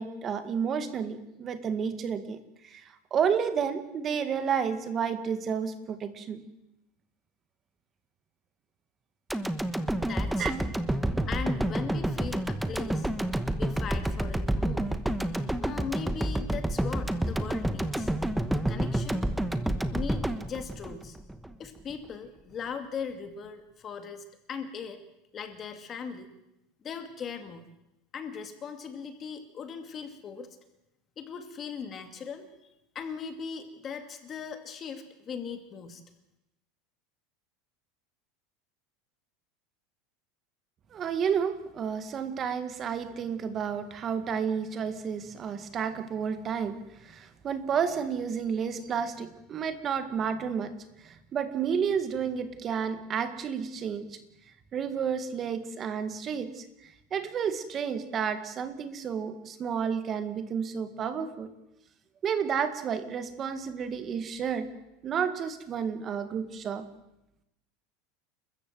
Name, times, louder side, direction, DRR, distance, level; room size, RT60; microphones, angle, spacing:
voice 1, 0.0-6.4 10.4-10.5 40.9-54.2 54.7-61.5 62.2-64.7 65.0-66.9, right 7 dB, 30° right, 10 dB, 1.9 m, -31 dB
sound 1, 9.3-21.5 21.9-22.0, right 1 dB, 5° right, 1.1 m, -29 dB
voice 2, 10.0-10.7 11.3-13.1 13.6-14.9 15.3-18.1 18.5-19.3 19.9-21.2 21.6-25.0 25.3-26.3 26.8-27.6 28.1-30.5 31.2-32.5 32.9-36.0, left 6 dB, 30° left, 7 dB, 2.3 m, -39 dB
30.0 x 14.0 x 7.9 m, 0.90 s
supercardioid pair, 150°, 0 cm